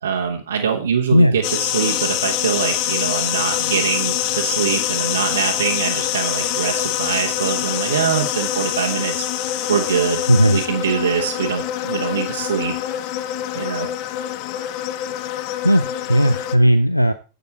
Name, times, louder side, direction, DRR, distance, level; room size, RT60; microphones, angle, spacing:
voice 1, 0.0-9.3 9.7-12.7 13.5-13.9, right 7 dB, 70° right, -1 dB, 1.3 m, -23 dB
voice 2, 1.1-1.4 10.3-10.6 15.6-17.1, equal, 90° left, 13 dB, 0.5 m, -15 dB
sound 1, 1.4-16.6, left 12 dB, 45° left, 0.8 m, -25 dB
10.0 x 8.4 x 4.2 m, 0.34 s
figure-of-eight pair, 90°, 0 cm